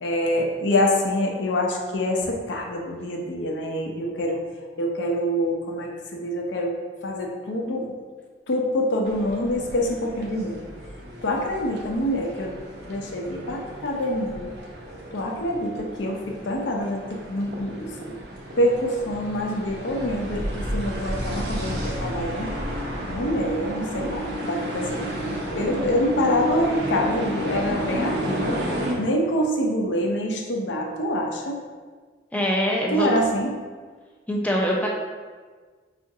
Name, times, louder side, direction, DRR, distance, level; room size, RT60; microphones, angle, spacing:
voice 1, 0.0-4.4 4.8-6.7 7.0-7.9 8.5-10.6 11.2-12.5 12.9-14.5 15.1-18.2 18.6-22.5 23.1-25.1 25.5-28.6 29.0-31.6 32.9-33.6, left 1 dB, 80° left, 1 dB, 0.5 m, -26 dB
sound 1, 9.0-28.9, equal, 60° right, 0.6 m, -32 dB
voice 2, 32.3-33.1 34.3-34.9, equal, 10° left, -2 dB, 0.3 m, -23 dB
4.7 x 2.4 x 2.6 m, 1.5 s
head